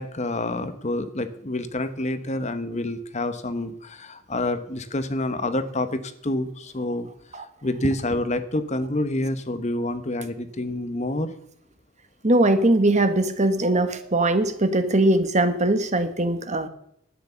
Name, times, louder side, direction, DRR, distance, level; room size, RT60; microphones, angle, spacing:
voice 1, 0.0-7.1 7.6-11.3, left 1 dB, 30° left, 11 dB, 1.0 m, -28 dB
voice 2, 12.2-16.7, right 1 dB, 35° right, 10 dB, 1.2 m, -21 dB
12.0 x 9.5 x 6.9 m, 0.69 s
head